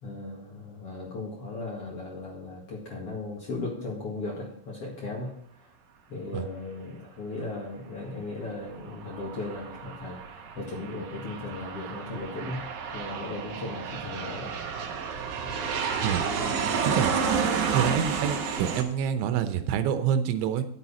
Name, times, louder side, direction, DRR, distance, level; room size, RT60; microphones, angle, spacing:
voice 1, 0.0-5.3 6.1-12.7 12.9-14.5 15.4-15.7, left 2 dB, 45° left, -3 dB, 2.1 m, -37 dB
Aircraft, 8.6-18.8, right 6 dB, 70° right, 1.9 m, -31 dB
voice 2, 17.7-20.6, right 8 dB, 90° right, 9 dB, 3.2 m, -27 dB
10.5 x 9.2 x 4.2 m, 0.71 s
omnidirectional pair, 5.1 m